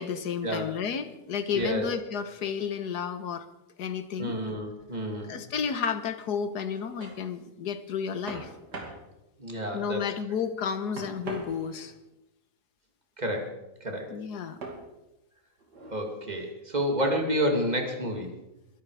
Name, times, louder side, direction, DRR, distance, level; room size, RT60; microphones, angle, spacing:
voice 1, 0.0-3.5 3.8-4.4 5.3-8.5 9.7-11.9 14.1-14.6, left 7 dB, 75° left, 11 dB, 1.7 m, -32 dB
voice 2, 1.5-1.9 4.2-5.4 9.4-10.1 13.2-13.6 13.8-14.1 15.9-18.3, equal, 25° right, 3 dB, 2.6 m, -29 dB
sound 1, 6.6-7.2 8.3-9.0 11.0-12.0 14.6-14.9 15.6-16.1 17.0-17.4, right 3 dB, 80° right, 3.2 m, -41 dB
22.0 x 12.0 x 4.9 m, 0.93 s
omnidirectional pair, 1.7 m